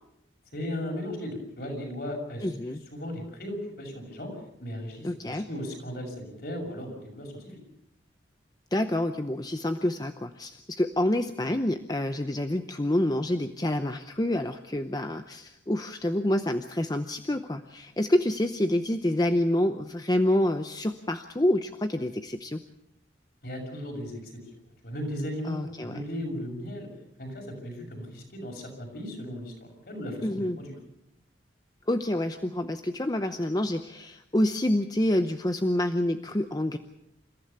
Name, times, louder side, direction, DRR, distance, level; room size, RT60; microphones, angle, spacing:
voice 1, 0.5-4.3 4.6-7.5 23.4-24.3 24.8-26.9 27.2-30.7, left 1 dB, 55° left, 1 dB, 6.6 m, -36 dB
voice 2, 2.4-2.8 5.0-5.5 8.7-22.6 25.5-26.0 30.2-30.6 31.9-36.8, left 1 dB, 20° left, 8 dB, 0.7 m, -27 dB
29.0 x 15.0 x 7.0 m, 0.79 s
head